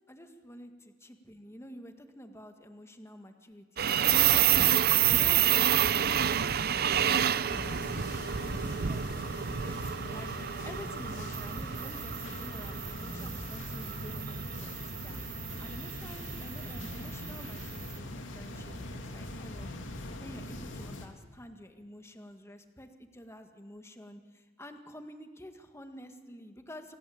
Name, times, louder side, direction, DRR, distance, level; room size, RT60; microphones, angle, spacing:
voice 1, 0.1-8.1 8.7-10.3 10.6-15.2 15.6-19.7 20.2-27.0, equal, 15° left, 6 dB, 1.8 m, -49 dB
sound 1, 3.8-17.8, right 10 dB, 55° right, 0.6 m, -29 dB
sound 2, 7.5-21.1, left 1 dB, 85° left, 2.7 m, -41 dB
26.5 x 17.0 x 8.6 m, 1.4 s
head